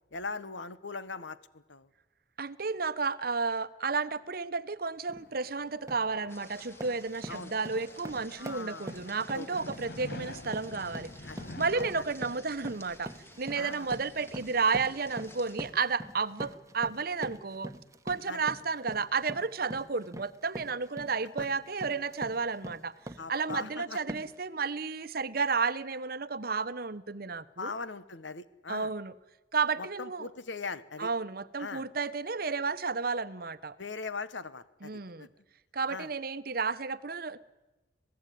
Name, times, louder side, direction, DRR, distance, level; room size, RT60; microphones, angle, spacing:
voice 1, 0.1-1.9 7.3-7.5 8.4-8.9 9.3-9.5 11.3-11.4 11.7-12.0 13.5-13.9 18.3-18.4 21.4-21.5 23.2-24.0 27.6-28.9 29.8-31.1 31.6-31.8 33.8-35.3 35.9-36.1, left 4 dB, 80° left, 14 dB, 1.3 m, -40 dB
voice 2, 2.4-13.1 13.4-17.7 18.0-22.9 23.3-27.7 28.7-29.1 29.5-30.3 31.0-33.8 34.8-35.3 35.7-37.4, right 4 dB, 50° right, 14 dB, 0.9 m, -32 dB
sound 1, 4.9-16.2, left 1 dB, 55° left, 1.5 m, -49 dB
sound 2, 5.1-5.3 5.7-6.1 6.5-23.7 24.1-24.4, right 1 dB, 15° right, 1.2 m, -44 dB
sound 3, 6.3-15.7, left 1 dB, 15° left, 2.1 m, -55 dB
26.5 x 17.5 x 9.3 m, 1.1 s
head